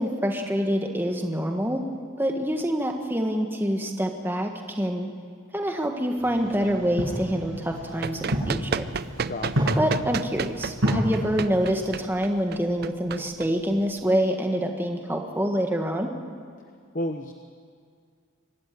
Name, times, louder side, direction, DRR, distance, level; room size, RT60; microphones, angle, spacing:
voice 1, 0.0-1.8 2.2-5.1 5.5-8.8 9.8-16.1, equal, 10° right, 3 dB, 1.6 m, -26 dB
sound 1, 6.2-11.9, equal, 90° right, 7.5 m, -30 dB
Run, 7.8-14.1, right 5 dB, 50° right, 0.5 m, -32 dB
voice 2, 9.3-10.0 16.9-17.3, left 1 dB, 45° left, 6 dB, 1.0 m, -32 dB
24.5 x 13.0 x 9.6 m, 2.2 s
head